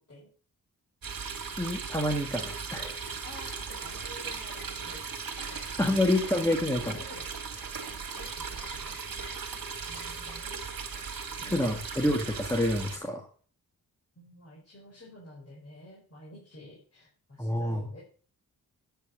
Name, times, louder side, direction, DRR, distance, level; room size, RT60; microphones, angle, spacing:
sound 1, 1.0-13.0, right 5 dB, 70° right, 2.4 m, -38 dB
voice 1, 1.6-3.0 5.8-7.0 11.4-13.3 17.4-17.9, left 1 dB, 10° left, 2 dB, 1.6 m, -28 dB
voice 2, 3.2-5.0 5.4-6.1 6.8-7.3 7.9-8.9 9.9-10.7 11.4-11.9 14.2-18.0, left 1 dB, 40° left, -5 dB, 5.4 m, -50 dB
sound 2, 3.7-13.2, left 3 dB, 90° left, 7.1 m, -54 dB
9.3 x 8.7 x 6.4 m, 0.42 s
wide cardioid pair, 110°, 37 cm